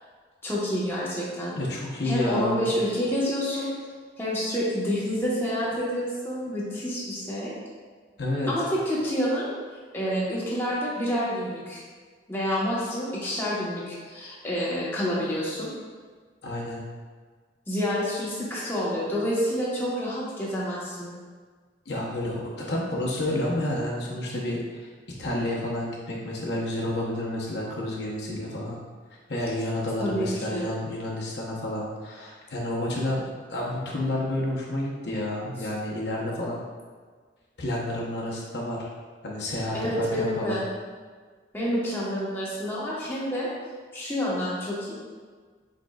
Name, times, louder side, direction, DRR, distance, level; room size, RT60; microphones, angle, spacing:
voice 1, 0.4-1.6 2.0-3.7 4.2-7.5 8.5-9.5 9.9-11.8 12.3-15.7 17.7-21.1 30.0-30.7 39.7-40.7 41.5-43.5 43.9-44.9, equal, 10° left, -8 dB, 1.0 m, -28 dB
voice 2, 1.5-2.7 8.2-8.5 16.4-16.8 21.9-24.9 25.2-28.8 29.3-33.2 33.5-36.6 37.6-38.9 39.2-40.6, left 1 dB, 65° left, -4 dB, 0.8 m, -30 dB
5.0 x 4.5 x 2.3 m, 1.5 s
head